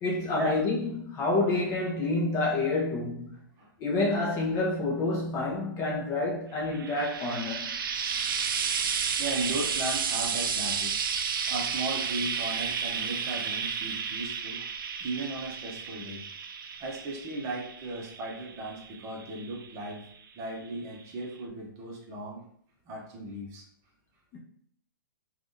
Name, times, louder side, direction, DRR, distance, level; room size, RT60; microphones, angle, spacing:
voice 1, 0.0-3.4 3.8-7.7 24.3-24.4, left 2 dB, 25° left, 0.6 m, -28 dB
Frying (food), 6.6-20.0 21.0-21.1, right 6 dB, 70° right, 0.4 m, -32 dB
voice 2, 9.2-10.9 11.5-14.7 15.0-16.2 16.8-20.0 20.4-22.4 22.8-23.6, right 2 dB, 25° right, 0.7 m, -36 dB
3.3 x 2.4 x 2.6 m
hypercardioid pair, 140°, 12 cm